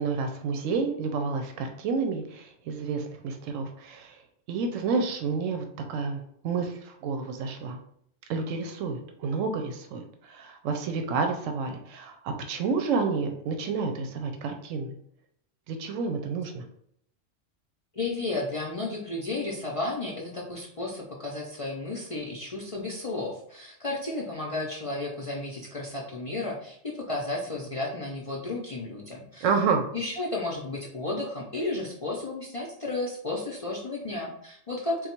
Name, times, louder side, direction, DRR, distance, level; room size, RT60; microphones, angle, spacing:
voice 1, 0.0-4.2 4.5-7.8 8.3-14.9 15.7-16.6 29.4-29.8, right 4 dB, 90° right, 5 dB, 0.9 m, -30 dB
voice 2, 17.9-29.5 29.9-35.1, left 2 dB, 50° left, -3 dB, 0.4 m, -33 dB
3.8 x 2.3 x 4.3 m, 0.69 s
omnidirectional pair, 1.3 m